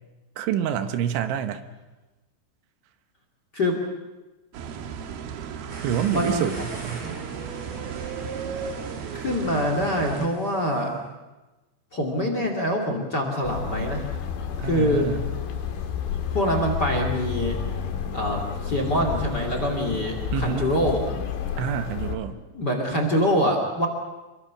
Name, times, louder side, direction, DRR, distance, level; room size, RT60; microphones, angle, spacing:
voice 1, 0.4-1.6 5.8-7.1 14.6-15.3 20.3-20.7 21.6-22.4, right 9 dB, 80° right, 9 dB, 3.5 m, -27 dB
sound 1, 4.5-10.3, right 7 dB, 65° right, 2.7 m, -35 dB
sound 2, 5.7-10.9, right 2 dB, 45° right, 7.2 m, -43 dB
voice 2, 6.1-6.5 7.0-7.1 9.1-11.0 11.9-14.1 14.6-15.1 16.3-17.6 18.1-21.1 22.5-23.9, equal, 30° left, 3 dB, 2.4 m, -25 dB
sound 3, 13.4-22.1, left 7 dB, 75° left, 4.5 m, -30 dB
27.0 x 24.0 x 6.2 m, 1.1 s
omnidirectional pair, 5.4 m